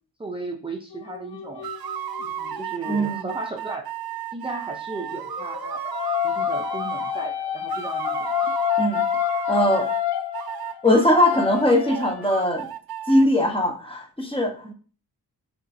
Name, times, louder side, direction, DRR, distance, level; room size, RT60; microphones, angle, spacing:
voice 1, 0.2-1.7 2.2-3.9 4.3-5.8 6.2-8.3 14.6-14.7, right 2 dB, 15° right, 2 dB, 0.5 m, -35 dB
sound 1, 0.9-3.0 4.9-12.3, left 10 dB, 85° left, 0.5 m, -28 dB
sound 2, 1.6-7.3 7.7-10.0 10.3-13.2, right 9 dB, 65° right, 0.5 m, -34 dB
voice 2, 2.9-3.3 8.8-9.0 9.5-9.9 10.8-12.7 13.1-14.7, left 1 dB, 15° left, 2 dB, 1.0 m, -20 dB
6.6 x 3.0 x 2.7 m, 0.39 s
wide cardioid pair, 85°, 39 cm